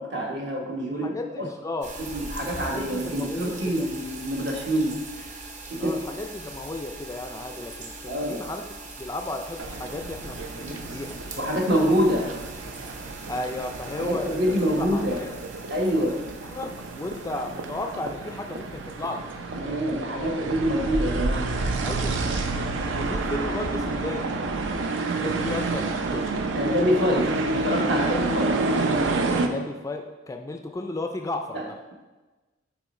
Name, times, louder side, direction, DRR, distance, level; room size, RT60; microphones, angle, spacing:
voice 1, 0.0-1.1 1.4-1.5 2.0-5.0 5.7-6.0 8.1-8.4 11.3-12.3 14.0-15.2 15.7-16.2 19.5-21.5 26.5-28.6 31.5-31.6, equal, 60° right, 0 dB, 1.1 m, -26 dB
voice 2, 0.9-1.9 2.7-3.9 5.8-11.2 11.7-12.0 13.3-15.3 16.4-19.3 21.8-22.4 22.9-24.4 25.2-26.3 29.4-31.8, left 2 dB, 15° left, 5 dB, 0.3 m, -34 dB
sound 1, 1.8-19.3, right 2 dB, 40° right, 0.7 m, -42 dB
sound 2, 9.6-29.5, right 3 dB, 80° right, 0.5 m, -29 dB
8.3 x 3.1 x 4.2 m, 1.2 s
head